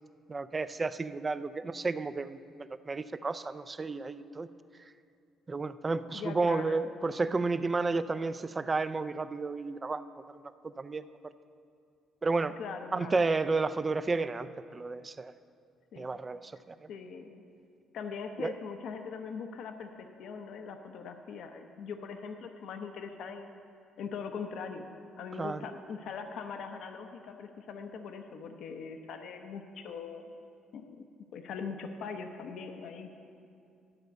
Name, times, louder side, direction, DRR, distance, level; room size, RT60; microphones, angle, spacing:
voice 1, 0.3-4.5 5.5-10.0 10.3-11.0 12.2-12.6 12.9-15.3 16.0-16.9 18.4-18.5 25.4-25.6, right 3 dB, 25° right, 13 dB, 0.4 m, -32 dB
voice 2, 6.1-6.9 12.6-13.2 15.9-16.2 16.9-17.5 17.9-23.6 24.0-24.9 25.2-30.3 30.7-31.0 31.3-33.1, left 5 dB, 65° left, 6 dB, 0.7 m, -41 dB
11.5 x 5.2 x 7.9 m, 2.4 s
cardioid pair, 120°, 0 cm